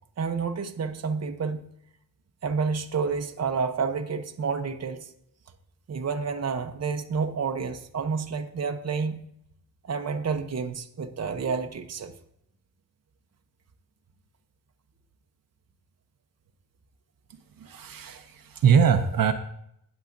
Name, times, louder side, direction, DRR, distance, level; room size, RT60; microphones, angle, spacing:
voice 1, 0.2-1.6 2.4-5.1 5.9-9.2 9.8-12.1 18.1-18.2, right 5 dB, 45° right, 0.8 m, -29 dB
voice 2, 17.6-19.3, right 7 dB, 75° right, 0.8 m, -22 dB
18.0 x 7.2 x 2.6 m
wide cardioid pair, 130°, 34 cm